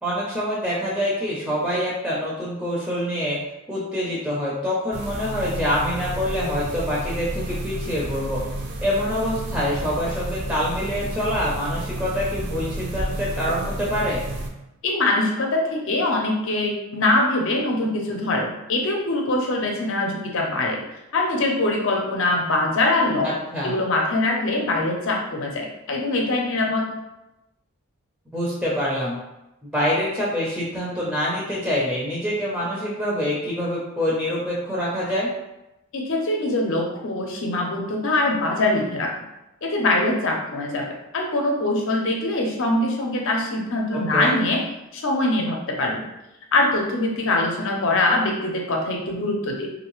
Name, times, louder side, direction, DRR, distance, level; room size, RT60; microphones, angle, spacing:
voice 1, 0.0-3.4 3.7-8.4 8.8-14.2 23.2-23.7 28.3-29.2 29.6-35.3 43.9-44.4, equal, 5° right, -6 dB, 0.5 m, -25 dB
sound 1, 4.9-14.5, right 1 dB, 50° right, 0.5 m, -31 dB
voice 2, 14.8-20.8 21.1-23.3 23.6-26.9 35.9-39.1 39.6-40.8 41.1-44.6 44.9-46.0 46.5-49.7, left 2 dB, 60° left, 0 dB, 0.6 m, -23 dB
3.1 x 2.6 x 3.0 m, 0.94 s
head